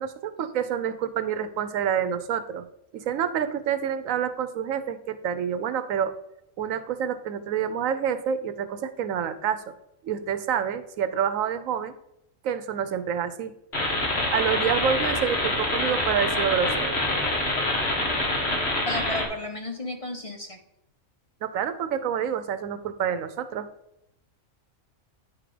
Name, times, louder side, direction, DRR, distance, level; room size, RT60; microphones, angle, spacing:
voice 1, 0.0-2.7 2.9-6.1 6.6-9.6 10.0-11.9 12.4-13.5 14.3-17.0 21.4-23.7, right 8 dB, 90° right, 11 dB, 1.1 m, -28 dB
sound 1, 13.7-19.3, left 1 dB, 55° left, 1.7 m, -26 dB
voice 2, 18.9-20.6, left 1 dB, 30° left, 3 dB, 0.7 m, -33 dB
9.6 x 3.7 x 5.0 m, 0.80 s
omnidirectional pair, 1.3 m